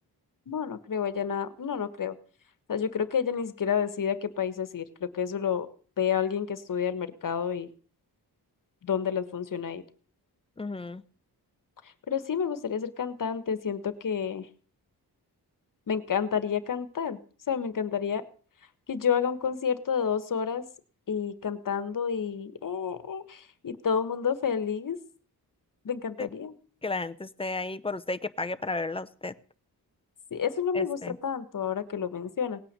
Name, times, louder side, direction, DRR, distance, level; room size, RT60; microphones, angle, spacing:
voice 1, 0.5-2.1 2.7-5.7 6.0-7.7 8.8-9.8 12.1-14.5 15.9-17.2 17.5-18.2 18.9-20.7 21.1-25.0 25.8-26.5 30.3-32.6, left 7 dB, 55° left, 13 dB, 1.5 m, -30 dB
voice 2, 10.6-11.0 26.2-26.3 26.8-29.3 30.7-31.2, left 3 dB, 15° left, 11 dB, 0.7 m, -33 dB
18.5 x 9.3 x 6.8 m, 0.42 s
wide cardioid pair, 140°, 39 cm